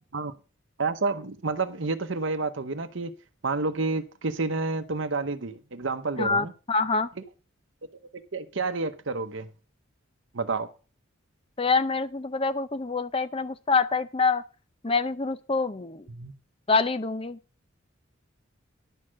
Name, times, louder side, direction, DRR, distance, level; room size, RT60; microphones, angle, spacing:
voice 1, 0.8-3.1 3.4-6.5 8.3-9.5 10.3-10.7 16.1-16.3, right 3 dB, 65° right, 0.8 m, -29 dB
voice 2, 6.2-7.1 11.6-14.4 14.8-16.0 16.7-17.4, left 4 dB, 25° left, 0.6 m, -26 dB
11.0 x 6.4 x 6.2 m
head